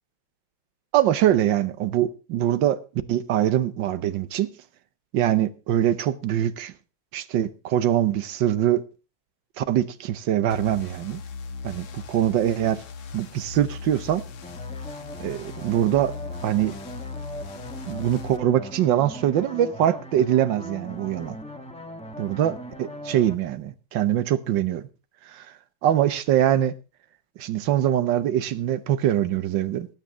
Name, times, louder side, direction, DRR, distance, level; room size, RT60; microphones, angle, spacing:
voice 1, 0.9-2.8 3.1-4.5 5.1-6.7 7.1-8.8 9.6-11.2 11.6-12.8 13.1-14.2 15.2-16.1 16.4-16.7 17.9-21.4 22.2-24.8 25.3-25.5 25.8-26.7 27.4-29.9, right 11 dB, 70° right, 1.5 m, -23 dB
sound 1, 10.5-18.4, left 5 dB, 85° left, 2.0 m, -39 dB
sound 2, 14.4-23.3, equal, 5° left, 0.9 m, -39 dB
19.0 x 9.2 x 3.7 m
omnidirectional pair, 2.2 m